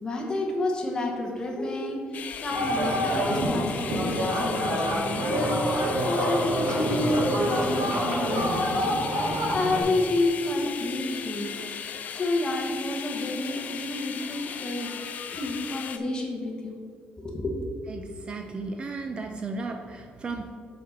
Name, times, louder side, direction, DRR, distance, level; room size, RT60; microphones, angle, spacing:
voice 1, 0.0-9.3 9.5-11.5 12.1-14.9 15.3-16.8 17.2-17.5, left 2 dB, 20° left, 0 dB, 1.0 m, -30 dB
sound 1, 2.1-16.0, left 7 dB, 45° left, 0.4 m, -37 dB
sound 2, 2.5-9.8, equal, 50° right, 2.0 m, -27 dB
voice 2, 17.9-20.5, right 3 dB, 30° right, 5 dB, 0.4 m, -35 dB
7.4 x 4.1 x 5.7 m, 2.2 s
cardioid pair, 175°, 4 cm